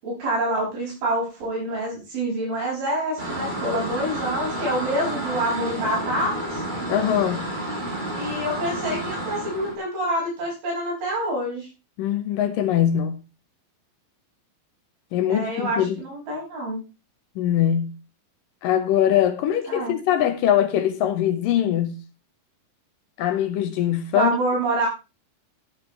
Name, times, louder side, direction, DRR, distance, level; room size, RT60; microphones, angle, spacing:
voice 1, 0.0-6.6 8.1-11.7 15.3-16.8 19.7-20.0 24.1-24.9, right 1 dB, 85° right, 7.8 m, -27 dB
sound 1, 3.2-9.8, right 1 dB, 15° right, 2.6 m, -30 dB
voice 2, 6.9-7.5 12.0-13.2 15.1-16.0 17.4-17.9 18.6-22.0 23.2-24.4, left 10 dB, 75° left, 2.5 m, -22 dB
12.5 x 11.5 x 3.2 m
omnidirectional pair, 4.2 m